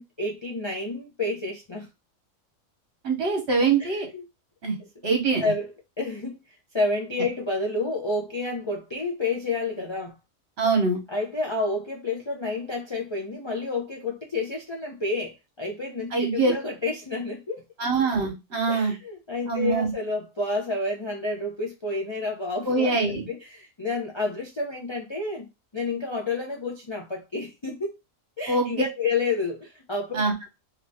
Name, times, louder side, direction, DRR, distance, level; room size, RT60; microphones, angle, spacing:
voice 1, 0.0-1.9 3.8-4.2 4.8-4.9 5.4-5.7 6.0-6.4 6.7-10.2 11.1-17.6 18.7-25.5 25.7-27.9 28.4-30.2, left 3 dB, 50° left, 0.3 m, -30 dB
voice 2, 3.0-4.1 4.6-4.7 5.0-5.4 10.6-11.0 16.1-16.5 17.8-18.9 19.5-19.9 22.7-23.3 28.5-28.7 30.1-30.3, right 4 dB, 55° right, 1.2 m, -23 dB
2.8 x 2.6 x 3.4 m
omnidirectional pair, 1.4 m